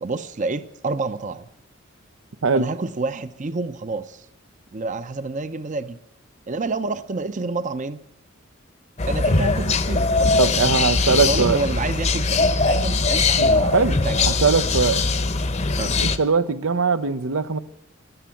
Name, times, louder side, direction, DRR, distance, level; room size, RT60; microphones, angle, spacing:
voice 1, 0.0-1.5 2.5-4.3 4.7-6.0 6.5-8.0 9.1-14.3 15.8-16.0, right 3 dB, 40° right, 0.6 m, -29 dB
sound 1, 9.0-16.2, left 3 dB, 35° left, 0.8 m, -21 dB
voice 2, 10.4-11.6 13.4-14.0 14.2-15.0 16.0-17.6, right 5 dB, 90° right, 0.7 m, -21 dB
13.5 x 11.5 x 8.4 m
head